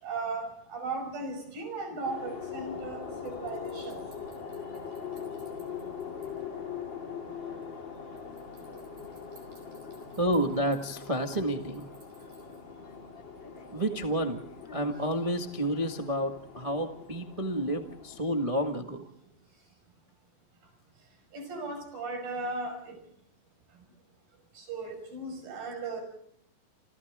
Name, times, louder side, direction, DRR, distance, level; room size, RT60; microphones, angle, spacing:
voice 1, 0.0-3.0 3.2-4.0 21.3-23.0 24.6-26.0, right 3 dB, 75° right, 5 dB, 7.5 m, -36 dB
sound 1, 2.0-18.3, left 6 dB, 35° left, 3.3 m, -42 dB
voice 2, 10.2-11.8 13.7-14.4 14.7-19.0, right 1 dB, 45° right, 3 dB, 0.4 m, -30 dB
29.0 x 28.5 x 3.7 m, 0.69 s
omnidirectional pair, 4.1 m